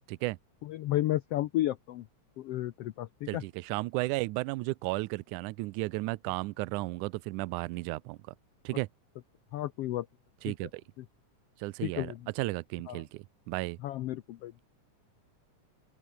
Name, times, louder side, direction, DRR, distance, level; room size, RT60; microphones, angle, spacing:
voice 1, 0.7-2.0 2.4-3.4 9.5-10.1 10.5-10.6 11.8-12.2 12.9-13.0 13.8-14.6, left 14 dB, 90° left, 1.3 m, -32 dB
voice 2, 3.3-8.2 8.6-8.9 10.4-10.8 11.6-13.8, right 21 dB, 80° right, 2.0 m, -34 dB
open air
omnidirectional pair, 3.7 m